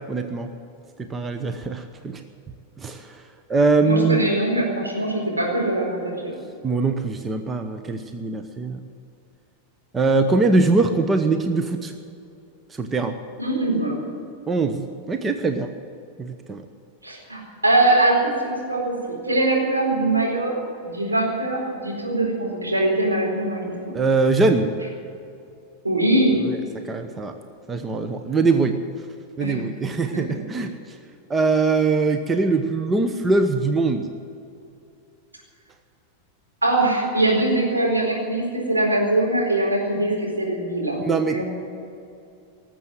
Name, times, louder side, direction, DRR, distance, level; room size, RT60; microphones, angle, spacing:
voice 1, 0.1-0.5 1.1-2.2 2.8-3.2 3.5-4.2 6.6-8.8 9.9-11.9 12.7-13.1 14.5-15.7 16.2-16.6 23.9-24.7 26.9-27.3 27.7-28.8 29.4-30.7 31.3-34.1 41.1-41.4, right 3 dB, 15° right, 7 dB, 0.9 m, -22 dB
voice 2, 3.8-6.3 13.4-14.0 17.0-20.5 20.8-23.9 25.8-26.4 29.4-29.6 30.1-30.4 36.6-41.0 41.3-41.4, right 2 dB, 80° right, -2 dB, 4.3 m, -22 dB
19.0 x 7.7 x 9.7 m, 2.6 s
figure-of-eight pair, 90°, 0 cm